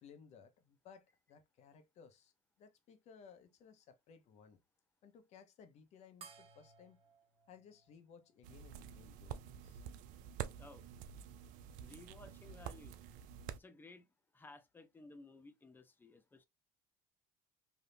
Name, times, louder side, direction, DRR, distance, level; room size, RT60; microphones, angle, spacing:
voice 1, 0.0-2.3 2.6-4.6 5.0-7.0 7.5-9.8, left 6 dB, 55° left, 0.8 m, -60 dB
sound 1, 6.2-9.0, right 6 dB, 45° right, 1.2 m, -61 dB
sound 2, 8.4-13.6, right 9 dB, 75° right, 0.4 m, -48 dB
voice 2, 11.8-13.0 13.5-14.1 14.3-16.4, left 3 dB, 15° left, 0.7 m, -57 dB
3.4 x 2.6 x 2.6 m
supercardioid pair, 105°, 13 cm